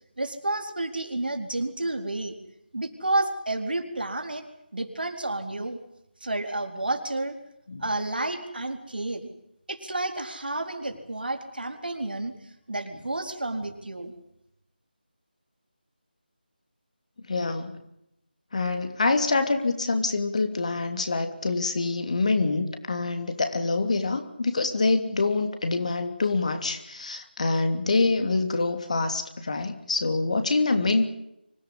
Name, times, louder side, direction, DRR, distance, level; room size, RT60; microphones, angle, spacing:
voice 1, 0.2-2.3 2.7-4.4 4.7-5.8 6.2-7.4 7.8-9.3 9.7-12.3 12.7-14.1, right 2 dB, 65° right, 5 dB, 4.2 m, -30 dB
voice 2, 17.3-17.7 18.5-31.1, left 3 dB, 40° left, 7 dB, 3.0 m, -25 dB
25.0 x 17.0 x 10.0 m, 0.82 s
figure-of-eight pair, 160°, 6 cm